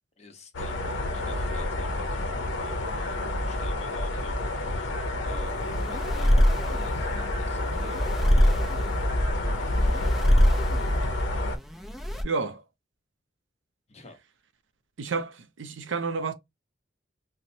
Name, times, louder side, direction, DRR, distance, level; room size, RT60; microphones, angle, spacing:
voice 1, 0.2-4.9 5.2-8.7 9.2-10.9 13.9-14.2, left 2 dB, 35° left, 0.8 m, -48 dB
sound 1, 0.5-11.6, left 1 dB, 80° left, 0.6 m, -29 dB
sound 2, 5.3-12.2, equal, ahead, 0.4 m, -25 dB
voice 2, 12.2-12.6 15.0-16.3, right 4 dB, 85° right, 0.5 m, -30 dB
4.2 x 2.1 x 2.6 m
head